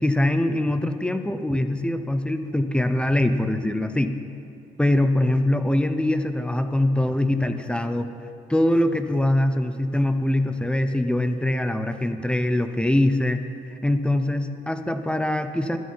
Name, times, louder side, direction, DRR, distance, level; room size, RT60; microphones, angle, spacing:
voice 1, 0.0-4.1 4.8-8.1 8.5-13.4 13.7-15.8, left 1 dB, 5° left, 8 dB, 0.6 m, -23 dB
12.5 x 9.4 x 5.6 m, 2.6 s
cardioid pair, 110°, 17 cm